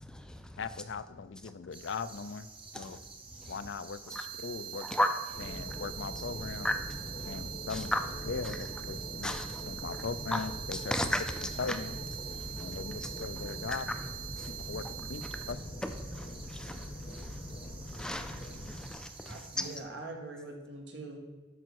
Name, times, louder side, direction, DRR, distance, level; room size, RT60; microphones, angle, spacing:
voice 1, 0.0-0.4 2.7-3.0 4.1-4.2 4.9-5.1 6.6-6.7 7.2-8.0 9.2-9.6 10.3-10.4 10.7-11.2 12.5-13.1 13.7-13.8 14.4-14.5 16.2-16.9 17.9-19.6, left 1 dB, 5° left, 0.4 m, -34 dB
voice 2, 0.6-2.5 2.8-3.0 3.5-4.9 5.4-6.7 7.3-7.9 8.2-9.4 9.6-10.9 11.6-11.9 12.6-13.9 14.5-14.8 15.1-15.2 15.5-15.6, left 5 dB, 75° left, 0.5 m, -39 dB
sound 1, 1.7-19.8, right 4 dB, 30° right, 1.2 m, -51 dB
sound 2, 4.1-15.5, right 15 dB, 50° right, 0.5 m, -44 dB
sound 3, 5.3-18.9, left 1 dB, 35° left, 0.8 m, -43 dB
voice 3, 19.2-21.2, right 2 dB, 75° right, 1.7 m, -43 dB
12.5 x 5.5 x 4.6 m
head